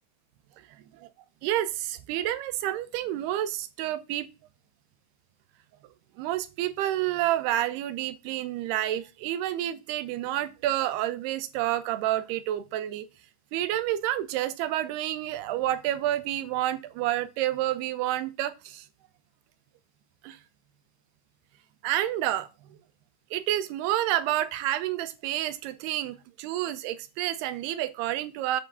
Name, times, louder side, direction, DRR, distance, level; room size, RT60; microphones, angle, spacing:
voice 1, 1.4-4.3 6.2-13.1 13.5-18.8 20.2-20.4 21.8-22.5 23.3-28.6, right 13 dB, 80° right, 2.8 m, -29 dB
8.5 x 5.8 x 6.8 m
omnidirectional pair, 4.8 m